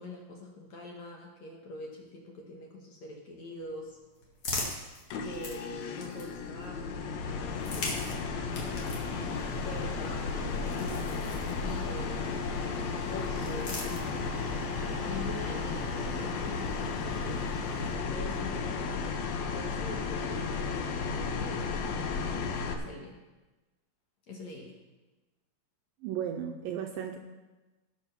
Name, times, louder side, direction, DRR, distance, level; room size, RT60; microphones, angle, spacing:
voice 1, 0.0-4.0 5.2-8.8 9.6-12.3 12.6-13.8 14.9-17.5 17.9-23.2 24.3-24.7, left 1 dB, 60° left, -1 dB, 2.1 m, -44 dB
sound 1, 3.6-6.6 7.4-12.0 13.0-14.5, left 2 dB, 40° left, 2.4 m, -41 dB
sound 2, 5.1-22.7, left 5 dB, 80° left, 1.6 m, -34 dB
sound 3, 8.5-17.9, right 1 dB, 10° left, 2.3 m, -45 dB
voice 2, 26.0-27.2, right 9 dB, 80° right, 4 dB, 2.2 m, -35 dB
17.5 x 6.3 x 5.9 m, 1.2 s
omnidirectional pair, 4.6 m